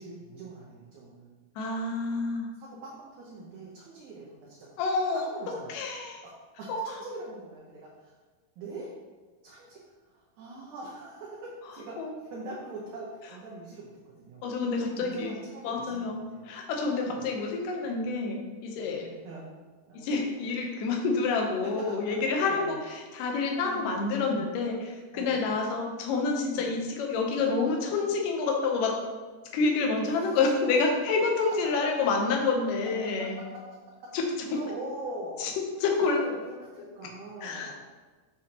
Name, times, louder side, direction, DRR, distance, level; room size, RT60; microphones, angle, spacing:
voice 1, 0.0-1.4 2.6-4.7 5.1-5.8 6.2-6.3 6.6-8.2 8.6-8.9 9.4-14.5 14.8-16.5 16.9-17.3 18.8-19.5 19.9-20.1 22.5-22.8 23.6-24.0 24.3-24.4 25.1-25.4 26.5-26.7 30.1-30.3 30.6-30.7 33.1-33.6 34.4-35.5 35.9-36.4 36.7-37.7, right 2 dB, 70° right, -5 dB, 2.1 m, -43 dB
voice 2, 1.6-2.5 4.8-5.3 5.7-6.2 6.7-6.8 12.0-12.1 14.4-15.3 15.6-19.1 19.9-29.0 29.5-33.4 34.1-34.3 35.4-35.5 35.8-36.2 37.4-37.7, left 4 dB, 75° left, 2 dB, 2.4 m, -28 dB
7.5 x 5.6 x 2.9 m, 1.3 s
omnidirectional pair, 3.9 m